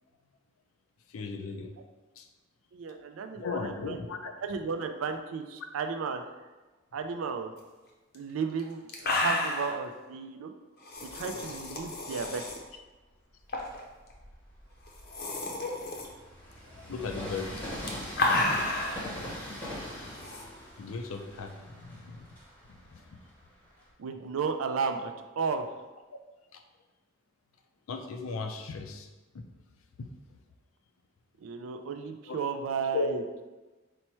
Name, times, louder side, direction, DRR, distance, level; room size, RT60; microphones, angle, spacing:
voice 1, 1.1-1.7 2.2-2.3 2.9-3.0 3.3-4.3 16.7-17.5 20.8-22.3 22.7-23.2 26.5-26.6 27.9-29.1 29.3-29.4 30.0-30.1 32.3-32.4 32.9-33.2, left 4 dB, 90° left, 5 dB, 0.5 m, -36 dB
voice 2, 2.7-4.0 4.4-6.4 6.9-7.5 8.1-10.5 11.0-12.5 24.0-25.8 31.4-33.2, right 5 dB, 85° right, 6 dB, 0.4 m, -34 dB
sound 1, 8.1-8.2 8.6-8.7 8.9-9.8 10.9-12.6 13.5-13.8 14.1-14.2 14.9-16.1 17.5-19.1 20.2-20.4, left 2 dB, 50° left, 0.6 m, -31 dB
Train, 11.0-12.7 13.3-23.9, left 1 dB, 10° left, 0.8 m, -43 dB
4.3 x 2.1 x 4.4 m, 1.2 s
head